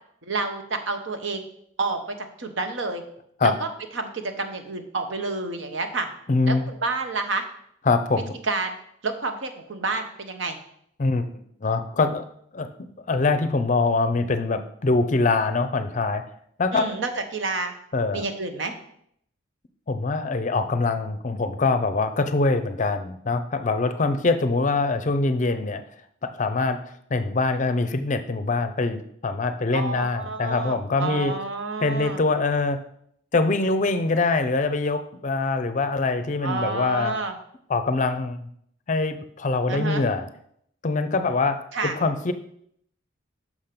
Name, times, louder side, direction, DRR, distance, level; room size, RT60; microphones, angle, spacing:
voice 1, 0.2-1.5 1.8-2.0 2.4-3.0 3.4-3.7 3.9-6.1 6.5-7.4 8.4-8.8 9.0-10.6 16.7-17.7 18.1-18.7 29.7-32.2 36.4-37.3 39.7-40.0 41.7-42.0, right 3 dB, 70° right, 7 dB, 1.0 m, -29 dB
voice 2, 6.3-6.6 7.9-8.3 11.0-11.3 11.6-12.2 12.5-12.7 13.1-16.2 16.6-16.9 17.9-18.2 19.9-25.8 26.2-26.8 27.1-31.3 31.8-32.8 33.3-37.1 37.7-38.5 38.9-40.3 40.8-42.3, left 3 dB, 40° left, 10 dB, 0.5 m, -23 dB
6.1 x 5.1 x 5.9 m, 0.69 s
head